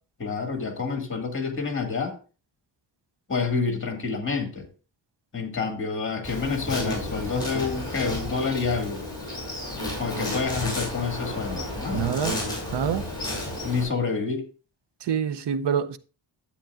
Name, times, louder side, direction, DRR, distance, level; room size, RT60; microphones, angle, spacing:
voice 1, 0.2-2.2 3.3-4.7 5.3-9.0 10.0-12.1 13.6-14.5, left 4 dB, 25° left, 1.9 m, -28 dB
Insect, 6.2-13.8, left 1 dB, 10° left, 5.6 m, -32 dB
voice 2, 11.9-12.3 12.7-13.1 15.0-16.0, right 8 dB, 60° right, 0.7 m, -26 dB
11.5 x 8.6 x 2.4 m
wide cardioid pair, 160°, 46 cm